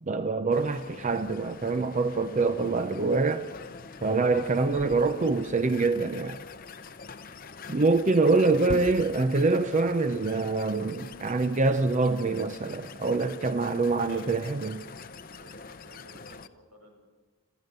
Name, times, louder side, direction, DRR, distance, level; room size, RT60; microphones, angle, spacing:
voice 1, 0.0-3.5 4.0-6.4 7.7-14.8, right 3 dB, 35° right, 10 dB, 0.5 m, -25 dB
sound 1, 0.5-16.5, left 4 dB, 40° left, 0.7 m, -43 dB
voice 2, 14.0-14.7 15.4-17.0, right 1 dB, 85° right, 3 dB, 5.5 m, -53 dB
27.0 x 14.5 x 6.7 m, 1.3 s
head